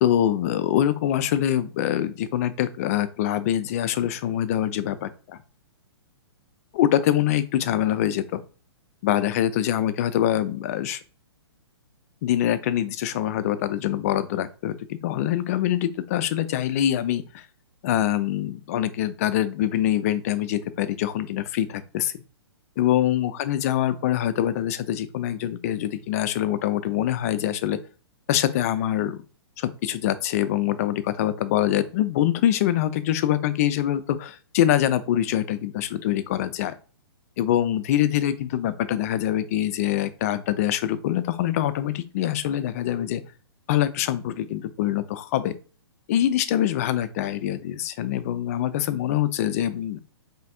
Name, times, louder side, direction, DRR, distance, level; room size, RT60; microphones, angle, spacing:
voice 1, 0.0-5.4 6.7-8.4 9.0-11.0 12.2-17.5 17.8-22.1 22.8-27.8 28.3-29.2 29.6-36.7 37.4-43.2 43.7-45.5 46.1-50.0, left 11 dB, 35° left, 13 dB, 0.4 m, -24 dB
4.0 x 3.4 x 2.4 m, 0.37 s
figure-of-eight pair, 115°, 14 cm